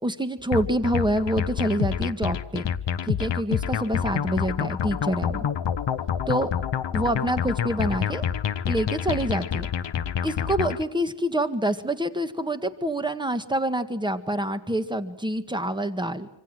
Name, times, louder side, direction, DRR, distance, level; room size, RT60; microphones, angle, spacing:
voice 1, 0.0-2.7 3.0-5.5 6.3-6.5 6.9-8.2 8.7-9.7 10.2-16.3, right 1 dB, 10° right, 9 dB, 1.7 m, -26 dB
sound 1, 0.5-10.8, left 8 dB, 70° left, 1.0 m, -28 dB
26.0 x 26.0 x 7.7 m, 0.75 s
wide cardioid pair, 135°, 45 cm